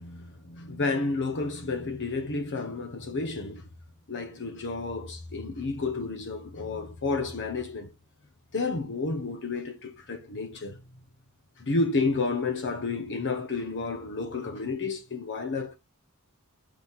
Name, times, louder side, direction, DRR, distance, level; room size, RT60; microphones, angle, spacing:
voice 1, 0.0-3.7 4.1-7.9 8.5-10.8 11.6-15.8, left 3 dB, 55° left, 0.9 m, -31 dB
4.9 x 4.1 x 5.7 m
head